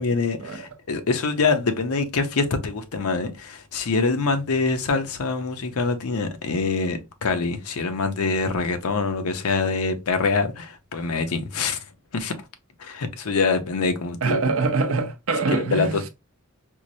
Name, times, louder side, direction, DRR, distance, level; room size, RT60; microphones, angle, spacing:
voice 1, 0.0-11.8 12.1-12.3 12.8-14.4 15.6-16.1, left 4 dB, 75° left, 0.6 m, -25 dB
voice 2, 14.2-16.0, right 3 dB, 65° right, 0.6 m, -24 dB
4.5 x 2.1 x 2.6 m
head